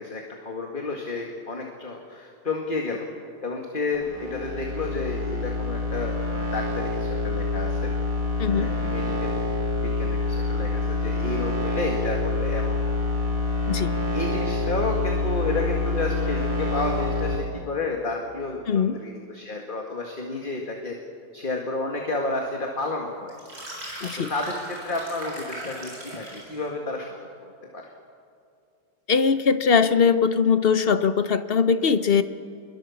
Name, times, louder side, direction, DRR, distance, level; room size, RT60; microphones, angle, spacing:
voice 1, 0.0-3.1 3.4-7.9 8.5-9.4 9.7-13.0 14.1-21.0 21.3-23.4 24.0-27.1 27.4-27.8, left 3 dB, 30° left, 1 dB, 2.2 m, -31 dB
sound 1, 3.9-17.4, left 3 dB, 15° right, 3.9 m, -27 dB
voice 2, 18.7-19.0 24.0-24.3 29.1-32.2, left 6 dB, 45° left, 11 dB, 0.8 m, -21 dB
sound 2, 23.3-26.6, right 1 dB, 55° right, 7.3 m, -38 dB
27.5 x 22.5 x 7.2 m, 2.4 s
omnidirectional pair, 1.9 m